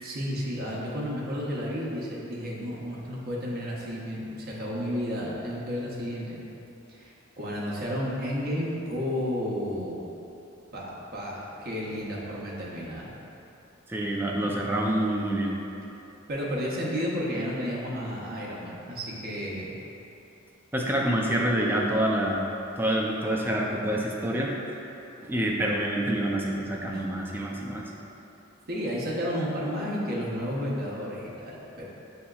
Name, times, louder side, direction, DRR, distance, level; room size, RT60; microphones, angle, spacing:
voice 1, 0.0-6.4 6.9-10.1 10.7-13.1 16.3-19.7 28.7-31.8, equal, 50° right, -5 dB, 0.7 m, -32 dB
voice 2, 13.9-15.6 20.7-22.5 22.8-24.9 25.2-27.9, right 1 dB, 10° right, -2 dB, 0.4 m, -27 dB
7.1 x 2.8 x 2.3 m, 2.9 s
head